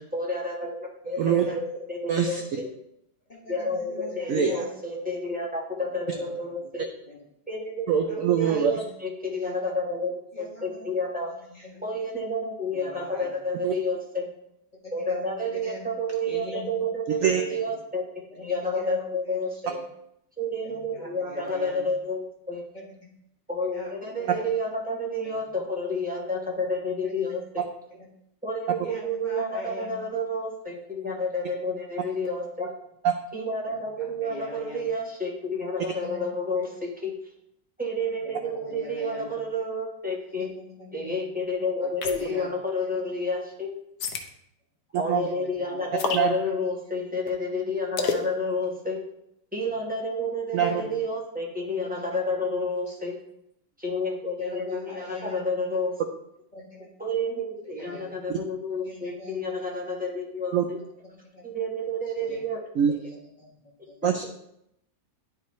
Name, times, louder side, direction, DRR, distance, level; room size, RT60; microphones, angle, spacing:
voice 1, 0.1-2.7 3.5-6.9 7.5-11.3 11.8-14.3 14.9-18.0 18.4-19.8 20.4-22.6 23.5-27.7 28.4-32.7 33.3-37.1 37.8-40.5 40.9-43.7 45.0-49.0 49.5-53.2 53.8-55.9 57.0-60.8 61.4-62.6, left 1 dB, 5° right, -3 dB, 1.0 m, -30 dB
voice 2, 1.0-1.6 2.4-2.5 3.3-4.7 6.1-6.2 7.1-7.2 8.1-8.9 9.4-9.5 10.3-10.9 11.5-11.8 12.7-13.3 14.8-15.8 16.3-16.7 17.1-17.6 18.3-19.0 19.2-19.4 19.6-19.8 20.9-21.8 22.7-22.8 23.7-24.5 25.2-25.4 27.0-27.3 28.8-29.9 32.0-32.1 34.0-34.8 35.9-36.2 36.5-36.7 38.2-39.4 40.6-40.9 41.8-42.5 42.8-42.9 45.0-45.9 46.4-46.5 50.6-50.9 51.8-52.2 52.9-53.0 54.4-55.4 56.5-56.9 57.8-58.1 58.8-59.6 61.3-61.4 62.2-62.4 62.9-63.5 63.9-64.0, left 1 dB, 30° left, -3 dB, 1.2 m, -42 dB
voice 3, 2.1-2.4 4.3-4.5 7.9-8.7 13.6-13.7 17.2-17.4 45.1-45.3 46.1-46.3 50.5-50.8 58.3-58.4 60.5-60.6 62.8-62.9 64.0-64.2, right 8 dB, 75° right, 5 dB, 0.7 m, -23 dB
sound 1, 42.0-42.4 44.0-44.3 46.0-46.3 48.0-48.3, left 6 dB, 65° left, 1.2 m, -28 dB
10.5 x 4.7 x 3.1 m, 0.79 s
omnidirectional pair, 1.9 m